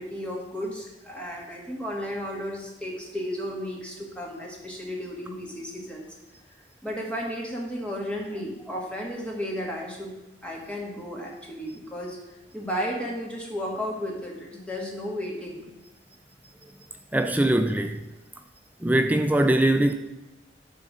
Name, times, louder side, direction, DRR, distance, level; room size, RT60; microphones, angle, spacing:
voice 1, 0.0-6.1 6.8-10.1 10.4-15.7, equal, 5° left, 1.7 m, -33 dB
voice 2, 17.1-18.0 18.8-19.9, right 1 dB, 10° right, 0.3 m, -21 dB
10.5 x 3.7 x 6.2 m
head